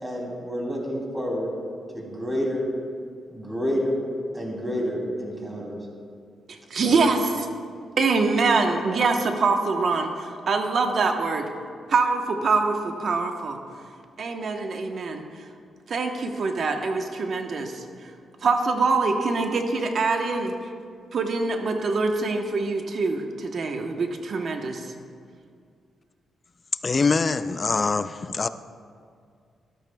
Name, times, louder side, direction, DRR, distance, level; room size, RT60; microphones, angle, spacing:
voice 1, 0.0-1.5 1.9-2.6 3.3-4.0 4.3-5.8 6.8-7.1, equal, 15° right, -2 dB, 2.8 m, -29 dB
voice 2, 6.5-7.5 8.0-11.5 11.9-13.6 14.2-15.2 15.9-17.8 18.4-20.5 21.1-24.9, right 4 dB, 60° right, 4 dB, 1.0 m, -24 dB
voice 3, 26.8-28.5, left 4 dB, 35° left, 13 dB, 0.4 m, -23 dB
13.5 x 12.0 x 2.3 m, 2.2 s
cardioid pair, 80°, 0 cm